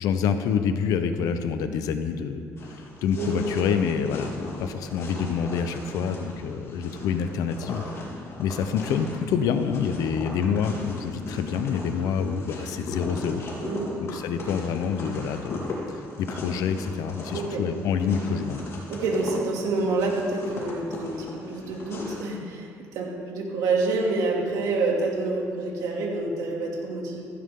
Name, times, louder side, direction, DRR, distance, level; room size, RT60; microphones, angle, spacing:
voice 1, 0.0-2.4 2.7-7.8 8.4-13.4 14.0-18.7, left 6 dB, 85° left, 9 dB, 1.0 m, -27 dB
sound 1, 2.6-22.3, left 2 dB, 50° left, 3.8 m, -38 dB
voice 2, 17.3-17.6 18.9-27.3, right 3 dB, 85° right, -1 dB, 2.8 m, -27 dB
15.5 x 15.0 x 3.9 m, 2.4 s
cardioid pair, 115°, 6 cm